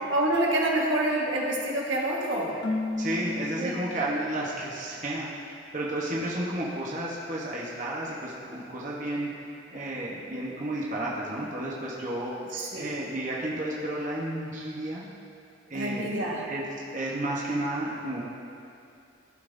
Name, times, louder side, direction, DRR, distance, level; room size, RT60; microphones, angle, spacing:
voice 1, 0.1-2.5 3.6-3.8 12.5-12.9 15.7-16.5, right 1 dB, 85° right, -3 dB, 1.5 m, -27 dB
Keyboard (musical), 2.6-4.6, left 2 dB, 75° left, 0.9 m, -33 dB
voice 2, 3.0-9.3 9.7-12.3 12.7-15.0 15.7-16.2 16.5-16.6 16.9-18.3, right 1 dB, 40° right, -5 dB, 1.0 m, -32 dB
15.0 x 5.6 x 2.6 m, 2.6 s
head